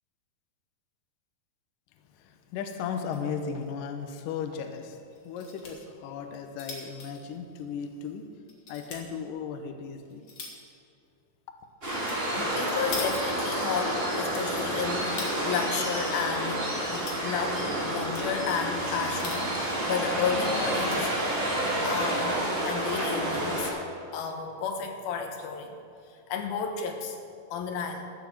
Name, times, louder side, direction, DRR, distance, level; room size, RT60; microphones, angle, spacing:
voice 1, 2.1-8.3 8.7-10.3, left 6 dB, 85° left, 6 dB, 1.9 m, -36 dB
sound 1, 2.8-3.3 3.6-3.7 4.0-4.1 5.1-5.7 6.2-8.1 8.5-9.0 9.7-10.7 11.8-12.2 12.5-13.8 14.1-15.4 15.8-16.4 16.7-17.2 17.8-18.3 19.0-19.7 20.2-20.3 20.5-21.0 21.7-22.0, left 3 dB, 50° left, 1.5 m, -42 dB
Waves surf, 11.8-23.7, right 1 dB, 15° right, 2.5 m, -29 dB
voice 2, 12.5-16.6 16.9-21.2 21.8-23.7 24.1-25.8 26.1-27.2 27.5-28.1, left 6 dB, 70° left, 4 dB, 2.6 m, -32 dB
13.5 x 7.1 x 7.3 m, 2.5 s
omnidirectional pair, 5.0 m